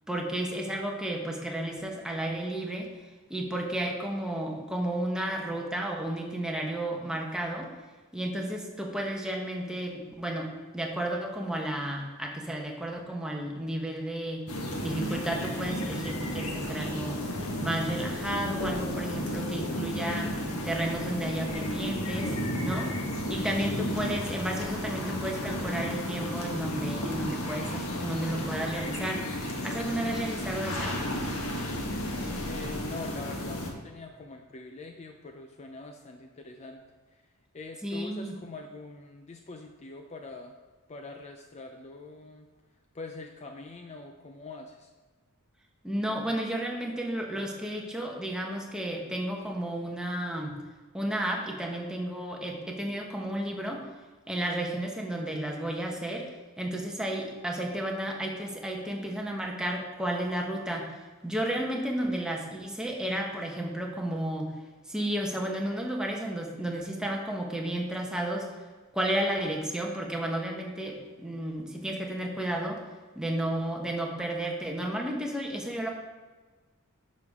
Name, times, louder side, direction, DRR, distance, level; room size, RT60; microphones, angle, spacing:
voice 1, 0.1-2.9 3.3-7.7 8.1-14.4 14.8-17.2 17.6-22.3 22.6-22.9 23.3-29.2 29.6-31.0 37.8-38.4 45.8-50.6 50.9-53.8 54.3-56.3 56.6-60.9 61.2-64.5 64.9-68.5 68.9-72.8 73.1-75.9, right 1 dB, 5° right, 0 dB, 1.2 m, -32 dB
sound 1, 14.5-33.7, left 1 dB, 85° left, 1.4 m, -33 dB
voice 2, 32.4-36.8 37.1-40.6 40.9-42.5 42.9-44.9, left 3 dB, 30° left, 4 dB, 0.5 m, -44 dB
10.5 x 6.4 x 3.6 m, 1.3 s
head